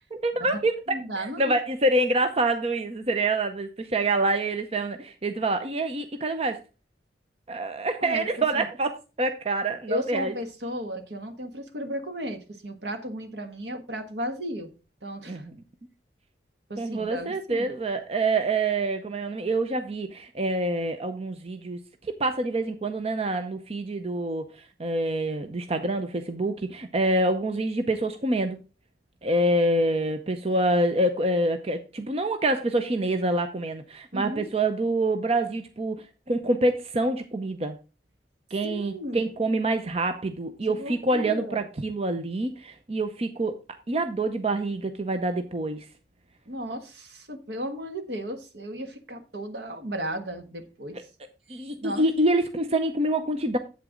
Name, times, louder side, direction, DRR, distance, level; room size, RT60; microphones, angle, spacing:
voice 1, 0.1-0.8 1.2-6.6 7.5-10.3 15.3-15.5 16.8-28.6 29.2-37.8 38.5-43.6 43.9-45.9 51.5-53.6, right 2 dB, 35° right, 0.7 m, -26 dB
voice 2, 0.9-1.5 8.0-8.3 8.5-8.7 9.9-14.7 15.0-15.4 16.7-17.7 34.1-34.5 38.6-39.3 40.8-41.7 46.4-51.1 51.7-52.0, equal, 70° right, 1.4 m, -34 dB
8.1 x 8.0 x 3.7 m
head